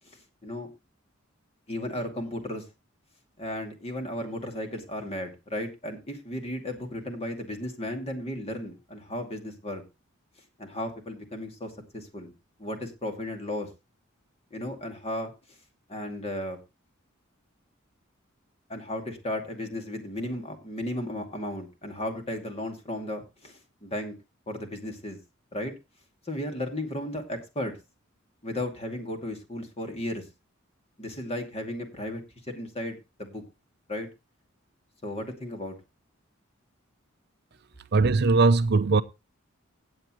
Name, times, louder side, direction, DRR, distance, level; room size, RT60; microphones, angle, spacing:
voice 1, 0.1-0.7 1.7-2.6 3.4-9.8 10.6-12.3 12.6-13.7 14.5-15.3 15.9-16.6 18.7-24.1 24.5-25.2 25.5-25.7 26.3-27.8 28.4-30.3 31.0-33.4 33.9-34.1 35.0-35.7, left 1 dB, 30° left, 2.4 m, -35 dB
voice 2, 37.9-39.0, right 3 dB, 55° right, 0.6 m, -20 dB
16.5 x 8.3 x 3.0 m
head